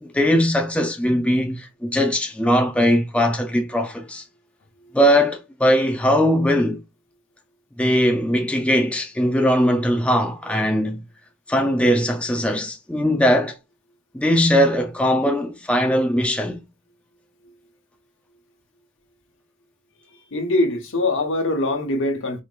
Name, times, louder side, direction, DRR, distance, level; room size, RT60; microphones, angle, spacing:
voice 1, 0.0-4.2 4.9-6.8 7.8-11.0 11.5-13.6 14.1-16.6, equal, 5° left, 0.5 m, -20 dB
voice 2, 20.3-22.4, left 2 dB, 60° left, 1.1 m, -22 dB
4.6 x 3.6 x 2.4 m
head